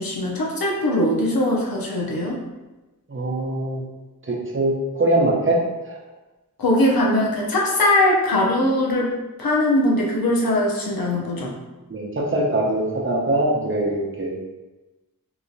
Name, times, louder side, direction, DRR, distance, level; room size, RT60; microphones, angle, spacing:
voice 1, 0.0-2.4 6.6-9.1 9.4-11.5, left 1 dB, 80° left, -2 dB, 0.7 m, -21 dB
voice 2, 3.1-3.8 4.2-6.0 11.9-14.4, right 1 dB, 35° right, -2 dB, 0.7 m, -22 dB
3.0 x 2.8 x 2.6 m, 1.1 s
wide cardioid pair, 55°, 35 cm